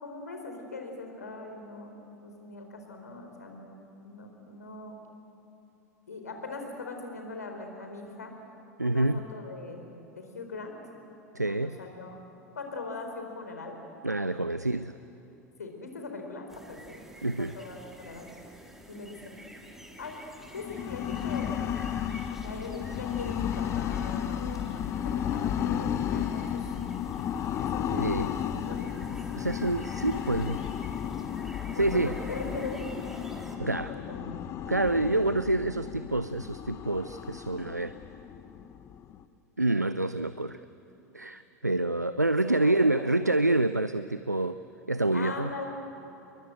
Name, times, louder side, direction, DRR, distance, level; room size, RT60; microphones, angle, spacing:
voice 1, 0.0-5.0 6.1-8.3 8.8-9.9 10.2-10.8 11.4-12.2 12.5-13.8 15.6-17.0 17.4-18.3 18.9-19.2 20.0-20.2 20.5-21.8 22.4-26.6 27.6-27.9 28.3-29.1 29.8-29.9 31.7-31.9 32.3-33.0 33.7-34.3 35.1-35.2 42.4-43.3 45.1-45.7, left 3 dB, 75° left, 4 dB, 4.4 m, -41 dB
voice 2, 8.8-9.2 11.3-11.8 14.0-14.9 17.2-17.6 27.9-28.3 29.3-30.6 31.7-32.2 33.6-34.0 34.6-38.0 39.6-40.6 41.1-44.6 44.9-45.5, right 2 dB, 90° right, 13 dB, 0.5 m, -27 dB
sound 1, 16.5-33.6, right 1 dB, 5° right, 3.2 m, -49 dB
sound 2, 20.5-39.2, left 9 dB, 30° left, 1.1 m, -33 dB
29.0 x 22.5 x 8.2 m, 3.0 s
figure-of-eight pair, 85°, 9 cm